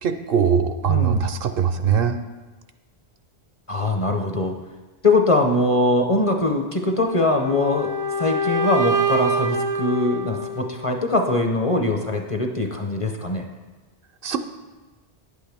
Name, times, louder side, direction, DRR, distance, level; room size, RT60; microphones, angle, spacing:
voice 1, 0.0-2.2 14.2-14.4, right 7 dB, 65° right, 9 dB, 0.7 m, -21 dB
voice 2, 0.9-1.2 3.7-4.6 5.0-7.9 8.2-13.5, left 2 dB, 35° left, 4 dB, 0.7 m, -22 dB
sound 1, 7.0-11.0, right 2 dB, 30° right, 0.4 m, -25 dB
10.0 x 8.3 x 3.5 m, 1.2 s
omnidirectional pair, 1.1 m